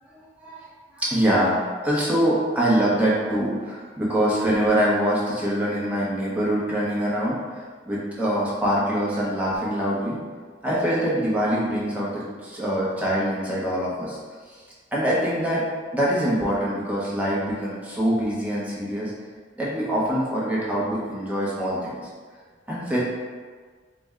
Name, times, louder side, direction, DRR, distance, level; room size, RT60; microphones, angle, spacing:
voice 1, 1.0-1.6 1.8-7.3 7.9-10.2 10.6-14.2 14.9-15.6 15.9-19.1 19.6-22.0 22.7-23.0, equal, 10° right, -7 dB, 0.8 m, -24 dB
4.2 x 2.2 x 3.5 m, 1.5 s
head